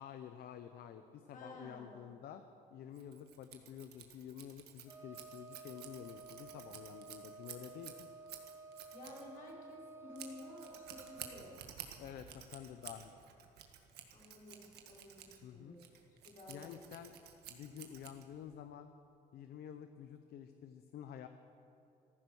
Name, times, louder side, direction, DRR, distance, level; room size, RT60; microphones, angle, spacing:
voice 1, 0.0-2.4 2.7-8.1 12.0-13.2 15.4-15.8 16.5-17.1 17.5-18.9 19.3-21.3, left 9 dB, 70° left, 9 dB, 0.8 m, -50 dB
voice 2, 1.3-2.0 8.9-11.5 14.1-15.8 16.1-16.8, left 1 dB, 50° left, -3 dB, 5.0 m, -53 dB
Scissors, 2.9-18.6, right 10 dB, 75° right, 1.8 m, -53 dB
Wind instrument woodwind instrument, 4.8-11.6, right 3 dB, 15° right, 1.9 m, -53 dB
14.5 x 14.5 x 6.3 m, 2.7 s
cardioid pair, 110°, 17 cm